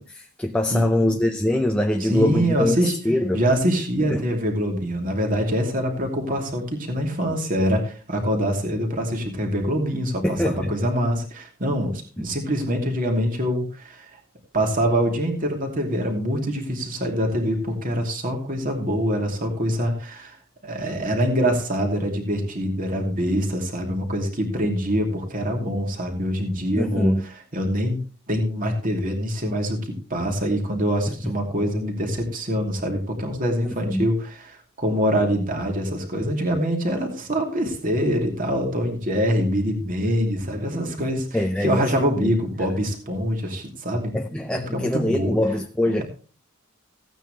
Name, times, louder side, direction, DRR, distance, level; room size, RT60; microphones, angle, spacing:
voice 1, 0.0-3.4 4.0-4.2 10.2-10.7 12.2-12.3 26.8-27.2 31.2-31.3 33.6-34.1 41.0-41.1 41.3-42.7 44.1-46.0, left 1 dB, 5° left, 0.5 m, -24 dB
voice 2, 2.0-2.9 3.3-14.2 14.5-20.4 20.6-27.1 27.5-28.0 28.3-44.2 44.5-45.4 46.0-46.1, equal, 40° right, 2.7 m, -24 dB
16.0 x 9.0 x 3.3 m
head